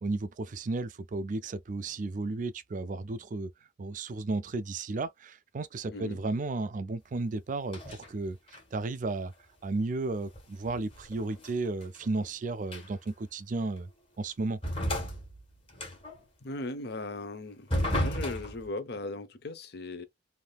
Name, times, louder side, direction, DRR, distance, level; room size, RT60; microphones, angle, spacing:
voice 1, 0.0-3.5 3.8-8.4 8.7-9.3 9.6-13.9 14.2-14.6, right 3 dB, 40° right, 0.4 m, -33 dB
voice 2, 5.9-6.2 16.4-17.7 18.0-20.0, left 2 dB, 55° left, 0.7 m, -38 dB
sound 1, 7.7-8.1 8.5-8.8 10.3-12.3 12.7-13.1 13.8-13.9 14.6-16.2 17.7-18.7, equal, 30° left, 1.5 m, -33 dB
3.4 x 2.7 x 2.3 m
head